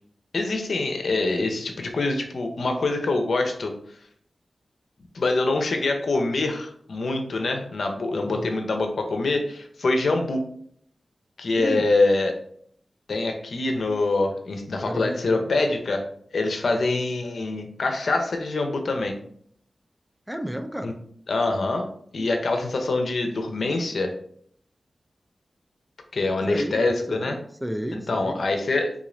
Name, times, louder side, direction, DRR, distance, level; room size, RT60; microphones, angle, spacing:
voice 1, 0.3-3.7 5.1-10.4 11.4-12.3 13.1-16.0 16.3-19.2 20.8-20.9 21.3-21.9 22.1-24.1 26.1-27.4 27.9-28.9, left 2 dB, 80° left, 4 dB, 0.6 m, -25 dB
voice 2, 11.6-11.9 14.9-15.5 16.6-16.8 20.3-21.0 26.5-26.8 27.1-28.5, equal, 5° right, 6 dB, 0.3 m, -32 dB
3.6 x 2.5 x 3.1 m, 0.63 s
wide cardioid pair, 100°, 0 cm